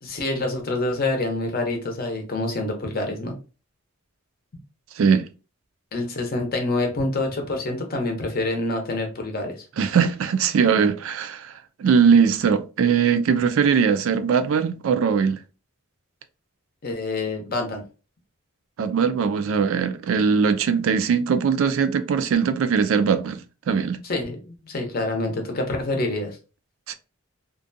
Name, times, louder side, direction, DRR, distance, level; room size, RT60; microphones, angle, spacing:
voice 1, 0.0-3.3 5.9-9.6 16.8-17.8 24.0-26.4, left 2 dB, 45° left, 0.6 m, -26 dB
voice 2, 5.0-5.3 9.8-11.5 11.8-15.4 18.8-23.4 23.7-24.0 26.9-27.0, right 6 dB, 70° right, 0.3 m, -20 dB
2.5 x 2.2 x 2.6 m
head